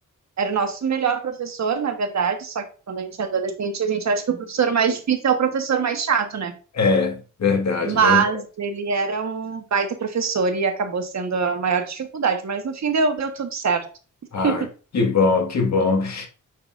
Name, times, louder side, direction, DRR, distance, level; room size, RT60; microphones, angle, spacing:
voice 1, 0.4-6.6 7.8-13.9 14.4-14.7, right 6 dB, 55° right, 1.4 m, -23 dB
voice 2, 6.8-8.2 14.3-14.6 14.9-16.3, left 4 dB, 60° left, 1.9 m, -21 dB
9.5 x 5.9 x 2.6 m
wide cardioid pair, 140°, 32 cm